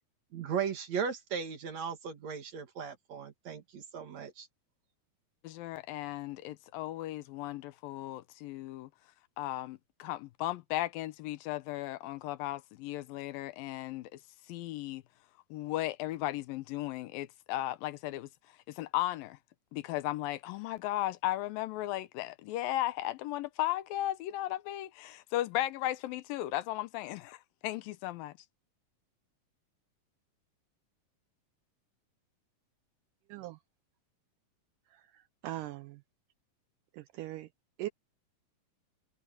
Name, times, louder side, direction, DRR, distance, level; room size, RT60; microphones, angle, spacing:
voice 1, 0.3-4.5, right 7 dB, 55° right, 2.8 m, -37 dB
voice 2, 5.4-8.9 9.4-14.1 14.5-15.0 15.5-18.3 18.7-19.4 19.7-27.4 27.6-28.3, left 15 dB, 80° left, 2.5 m, -36 dB
voice 3, 34.9-36.0 36.9-37.5 37.8-37.9, right 15 dB, 80° right, 2.0 m, -41 dB
omnidirectional pair, 4.1 m